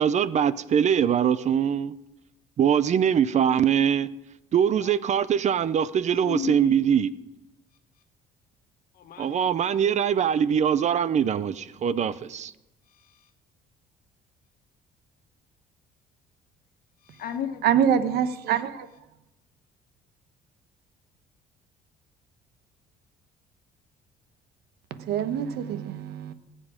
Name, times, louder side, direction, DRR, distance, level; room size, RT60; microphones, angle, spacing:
voice 1, 0.0-1.9 2.6-4.1 4.5-7.1 9.2-12.5, right 8 dB, 45° right, 0.5 m, -22 dB
voice 2, 3.3-3.6 4.7-5.0 6.1-6.8 8.9-9.5 12.9-13.3 17.0-17.8, left 9 dB, 60° left, 1.5 m, -36 dB
voice 3, 17.6-18.9 24.9-26.3, right 8 dB, 75° right, 1.0 m, -25 dB
20.0 x 7.6 x 5.0 m
cardioid pair, 110°, 17 cm